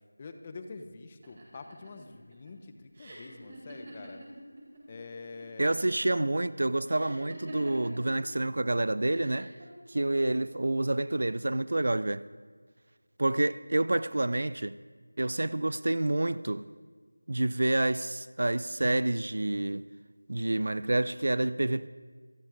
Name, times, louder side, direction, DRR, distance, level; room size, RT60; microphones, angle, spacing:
voice 1, 0.2-4.2 4.9-5.9, left 3 dB, 20° left, 0.7 m, -46 dB
sound 1, 1.2-4.8 5.1-5.8 6.9-8.1 9.1-9.6, right 1 dB, 30° right, 4.9 m, -45 dB
voice 2, 5.6-9.5 9.9-12.2 13.2-14.7 15.2-16.7 17.3-19.8 20.3-21.9, right 2 dB, 55° right, 0.4 m, -28 dB
27.0 x 14.5 x 2.6 m
figure-of-eight pair, 170°, 0 cm